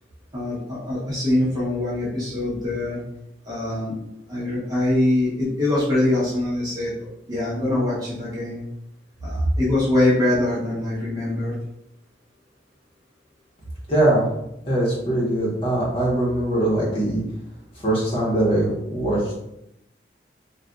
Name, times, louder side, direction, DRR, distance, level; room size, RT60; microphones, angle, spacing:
voice 1, 0.3-3.0 3.5-4.0 4.3-8.6 9.2-11.5, left 1 dB, 20° right, -7 dB, 0.9 m, -23 dB
voice 2, 13.9-14.3 14.6-17.2 17.8-19.4, right 1 dB, 30° left, -6 dB, 1.1 m, -21 dB
3.9 x 2.5 x 2.3 m, 0.83 s
head